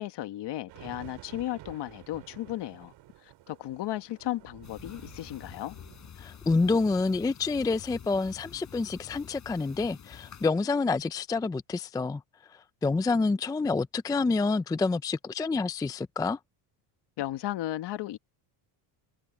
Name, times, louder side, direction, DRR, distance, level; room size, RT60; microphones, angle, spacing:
voice 1, 0.0-2.9 3.2-5.8 17.2-18.2, left 14 dB, 60° left, 1.6 m, -35 dB
sound 1, 0.7-6.1, right 15 dB, 65° right, 4.7 m, -51 dB
sound 2, 4.6-10.5, left 8 dB, 35° left, 4.7 m, -48 dB
voice 2, 6.2-12.2 12.8-16.4, left 3 dB, 10° left, 0.4 m, -28 dB
cardioid pair, 115°, 47 cm